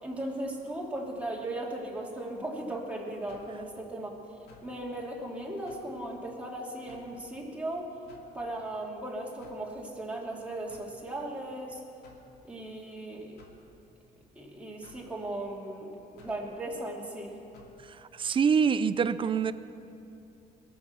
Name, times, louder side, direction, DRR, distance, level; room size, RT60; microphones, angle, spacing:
voice 1, 0.0-4.2 4.6-7.9 8.3-11.8 12.4-13.4 14.3-17.3, right 1 dB, 10° right, -3 dB, 2.9 m, -37 dB
sound 1, 3.3-3.6 4.5-4.8 5.7-5.9 6.9-7.2 8.1-8.4 9.4-9.7 10.7-11.0 12.0-12.3 13.4-13.6 14.8-15.1 16.2-16.4 17.5-17.8, left 4 dB, 70° left, 2.5 m, -56 dB
voice 2, 18.1-19.5, right 6 dB, 30° right, 14 dB, 0.5 m, -25 dB
22.0 x 7.8 x 6.7 m, 2.8 s
cardioid pair, 110°, 17 cm